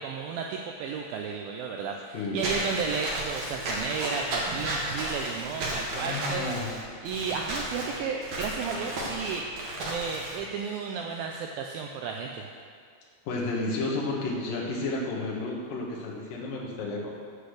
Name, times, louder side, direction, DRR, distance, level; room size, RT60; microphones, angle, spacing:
voice 1, 0.0-6.5 7.0-12.5, right 5 dB, 80° right, 2 dB, 2.1 m, -33 dB
Walk footsteps / Squeak, 2.4-10.4, right 1 dB, 60° right, 1.4 m, -33 dB
voice 2, 5.9-6.7 13.3-17.1, left 2 dB, 65° left, -3 dB, 3.0 m, -32 dB
8.5 x 7.8 x 6.5 m, 2.2 s
omnidirectional pair, 4.7 m